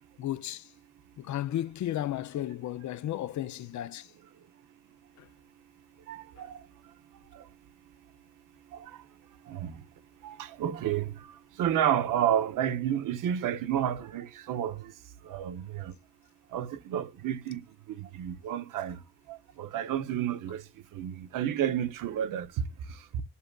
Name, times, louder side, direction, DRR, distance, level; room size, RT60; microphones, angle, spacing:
voice 1, 0.2-0.6 1.2-4.1, left 12 dB, 65° left, 0.5 m, -33 dB
voice 2, 6.1-6.6 7.3-7.4 8.7-9.0 9.5-9.8 10.2-14.9 15.2-15.9 16.5-19.0 19.3-20.6 20.9-23.2, right 10 dB, 85° right, 0.7 m, -31 dB
12.5 x 5.5 x 2.2 m
cardioid pair, 65°, 31 cm